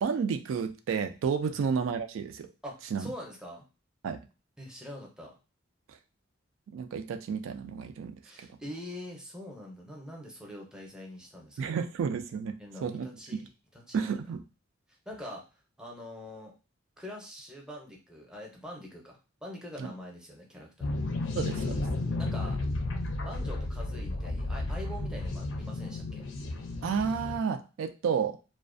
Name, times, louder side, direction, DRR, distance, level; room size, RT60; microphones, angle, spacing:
voice 1, 0.0-2.5 2.9-3.1 4.0-4.2 6.7-8.2 11.6-13.1 13.9-14.4 19.8-19.9 21.4-21.9 26.8-28.4, right 6 dB, 90° right, 7 dB, 0.3 m, -31 dB
voice 2, 2.6-3.6 4.6-5.4 8.2-11.8 12.6-14.2 15.1-15.4 15.8-16.5 17.0-21.0 22.2-22.6 23.2-26.2, left 1 dB, 5° right, -1 dB, 0.6 m, -44 dB
sound 1, 20.8-27.4, left 2 dB, 70° left, 0.5 m, -33 dB
2.4 x 2.1 x 2.4 m, 0.31 s
head